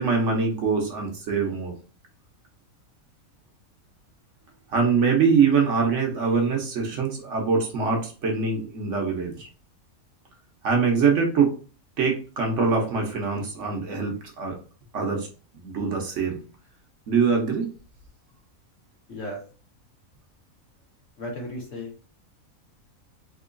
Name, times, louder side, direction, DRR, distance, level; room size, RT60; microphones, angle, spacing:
voice 1, 0.0-1.7 4.7-9.5 10.6-11.5 12.0-14.5 14.9-15.3 15.5-16.4 17.1-17.7, right 5 dB, 60° right, 1 dB, 1.1 m, -23 dB
voice 2, 19.1-19.4 21.2-21.9, left 1 dB, 60° left, -2 dB, 1.6 m, -34 dB
3.7 x 2.8 x 2.5 m, 0.37 s
omnidirectional pair, 1.5 m